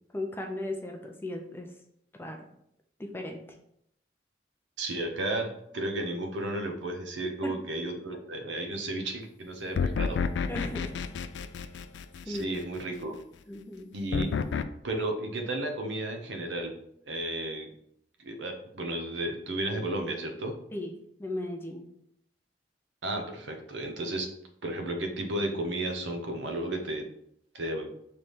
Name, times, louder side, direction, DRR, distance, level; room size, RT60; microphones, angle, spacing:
voice 1, 0.1-1.8 2.2-2.4 3.0-3.4 7.4-7.5 10.5-11.1 11.6-11.7 12.3-12.7 13.5-13.9 20.7-21.8, left 1 dB, 10° left, 2 dB, 0.5 m, -37 dB
voice 2, 4.8-10.2 12.2-13.2 13.9-14.4 14.8-16.8 17.1-17.7 18.2-20.6 23.0-24.3 24.6-27.1 27.5-27.9, right 1 dB, 80° right, 4 dB, 0.7 m, -33 dB
sound 1, 9.8-12.6 14.1-14.6, left 5 dB, 80° left, 0.3 m, -30 dB
3.4 x 3.3 x 4.1 m, 0.73 s
head